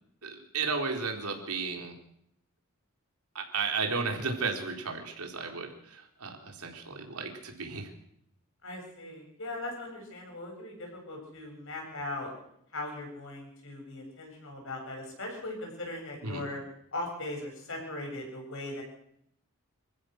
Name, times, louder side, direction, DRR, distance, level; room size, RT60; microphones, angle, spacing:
voice 1, 0.2-2.0 3.3-7.9 16.2-16.4, right 4 dB, 85° right, 2 dB, 4.1 m, -34 dB
voice 2, 8.6-12.3 12.7-16.6 16.9-18.8, left 2 dB, 60° left, 1 dB, 7.6 m, -39 dB
26.5 x 15.0 x 6.6 m, 0.74 s
head